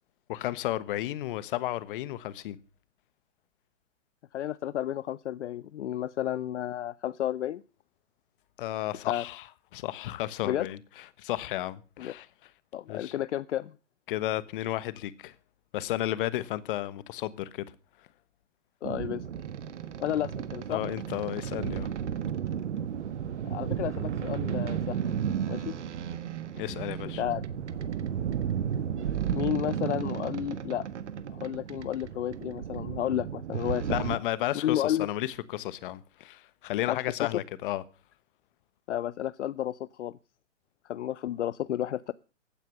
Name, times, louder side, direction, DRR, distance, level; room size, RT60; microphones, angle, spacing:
voice 1, 0.3-2.6 8.6-9.4 9.7-10.8 11.2-12.3 12.9-13.1 14.1-15.3 15.7-17.7 20.7-21.9 26.6-27.2 33.9-37.8, left 14 dB, 45° left, 1.3 m, -33 dB
voice 2, 4.3-7.6 9.1-9.2 10.4-10.7 12.0-12.1 12.7-13.7 18.8-19.2 20.0-20.8 23.4-25.0 25.5-25.8 27.0-27.4 29.3-30.9 31.3-34.0 34.6-35.1 36.9-37.3 38.9-40.1 40.8-42.1, left 12 dB, 70° left, 0.7 m, -32 dB
sound 1, 18.8-34.2, right 8 dB, 70° right, 1.5 m, -33 dB
15.5 x 9.2 x 6.7 m
hypercardioid pair, 125°, 37 cm